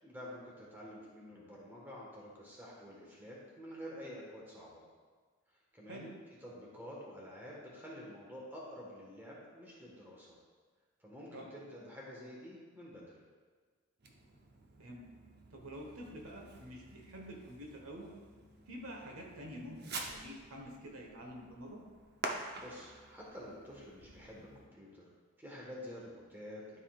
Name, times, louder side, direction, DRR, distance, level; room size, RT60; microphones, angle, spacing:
voice 1, 0.0-4.8 5.7-10.4 11.0-13.2 22.3-25.0 25.4-26.8, equal, 10° right, -4 dB, 1.4 m, -49 dB
Fireworks, 14.0-24.7, right 3 dB, 45° right, 0.7 m, -48 dB
voice 2, 15.5-18.0 18.7-21.8, equal, 70° right, 0 dB, 1.3 m, -48 dB
12.0 x 5.5 x 2.4 m, 1.5 s
head